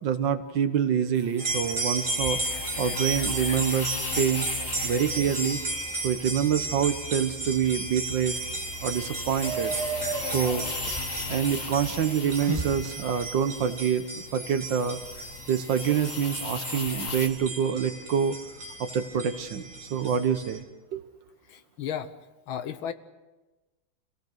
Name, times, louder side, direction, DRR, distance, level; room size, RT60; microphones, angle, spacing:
voice 1, 0.0-4.5 4.8-5.6 6.0-8.4 8.8-9.7 10.3-10.6 11.3-15.0 15.5-18.4 18.8-20.6 20.9-21.0, right 8 dB, 65° right, 10 dB, 1.6 m, -26 dB
sound 1, 1.2-17.3, left 4 dB, 40° left, 2.1 m, -38 dB
sound 2, 1.4-20.6, right 2 dB, 35° right, 2.8 m, -35 dB
sound 3, 2.2-13.5, right 3 dB, 15° right, 1.6 m, -38 dB
voice 2, 21.5-22.1 22.5-22.9, left 9 dB, 70° left, 11 dB, 1.8 m, -34 dB
27.0 x 17.5 x 6.6 m, 1.1 s
omnidirectional pair, 2.3 m